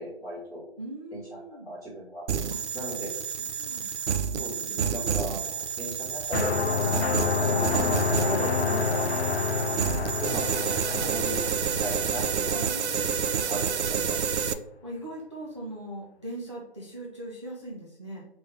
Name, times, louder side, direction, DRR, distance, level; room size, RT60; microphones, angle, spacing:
voice 1, 0.0-0.6 1.1-1.2 1.6-2.2 2.7-3.1 4.3-6.6 7.4-8.0 8.2-9.0 10.2-12.6 13.2-14.2, right 1 dB, ahead, -23 dB, 1.6 m, -37 dB
voice 2, 0.8-1.7 2.5-2.6 3.4-3.9 4.3-4.8 8.2-8.9 12.5-13.4 14.8-18.2, right 1 dB, 30° right, -4 dB, 0.4 m, -40 dB
sound 1, 2.3-14.5, right 7 dB, 90° right, 0.5 m, -29 dB
sound 2, 6.3-13.0, left 5 dB, 70° left, 0.6 m, -28 dB
3.5 x 3.4 x 3.3 m, 0.77 s
figure-of-eight pair, 160°, 33 cm